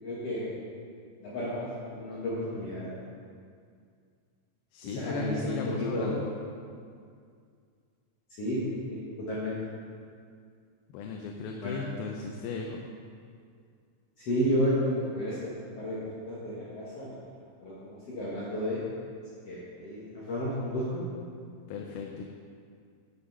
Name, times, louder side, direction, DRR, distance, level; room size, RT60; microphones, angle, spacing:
voice 1, 0.0-0.5 1.2-2.9 4.8-6.2 8.4-9.5 11.6-11.8 14.2-16.0 16.3-17.2 17.6-18.8 19.5-21.0, equal, 50° left, -8 dB, 2.3 m, -32 dB
voice 2, 4.7-6.3 10.9-12.8 21.7-22.2, left 4 dB, 85° left, 1 dB, 2.5 m, -36 dB
10.0 x 7.6 x 5.5 m, 2.2 s
omnidirectional pair, 4.1 m